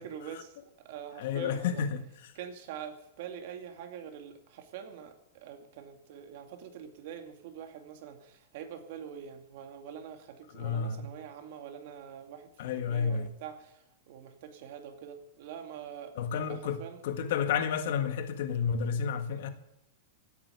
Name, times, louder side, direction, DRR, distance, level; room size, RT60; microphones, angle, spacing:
voice 1, 0.0-1.8 2.3-12.5 12.8-16.2 16.5-17.0, right 8 dB, 50° right, 2.4 m, -45 dB
voice 2, 1.2-2.0 10.5-11.0 12.6-13.3 16.2-19.5, left 7 dB, 60° left, 1.7 m, -31 dB
17.0 x 9.2 x 8.3 m
supercardioid pair, 165°, 0 cm